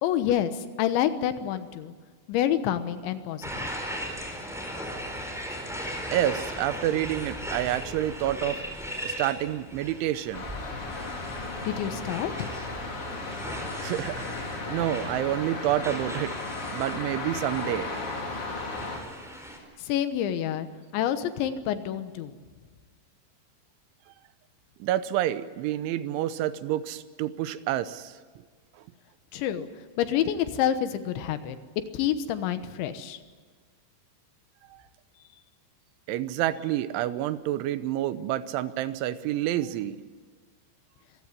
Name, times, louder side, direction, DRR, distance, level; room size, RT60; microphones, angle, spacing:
voice 1, 0.0-1.9 2.3-3.7 11.7-12.5 19.8-20.7 20.9-22.3 29.3-29.7 30.0-31.6 31.9-33.2, left 10 dB, 80° left, 10 dB, 3.5 m, -28 dB
sound 1, 3.4-19.6, equal, ahead, 3.6 m, -38 dB
voice 2, 6.1-8.6 9.0-10.5 13.8-14.3 14.7-16.3 16.7-17.9 24.8-28.2 34.7-34.8 36.1-40.0, right 13 dB, 90° right, 13 dB, 3.3 m, -28 dB
sound 2, 10.3-19.0, left 3 dB, 35° left, 3.4 m, -35 dB
25.5 x 16.0 x 9.7 m, 1.5 s
omnidirectional pair, 5.3 m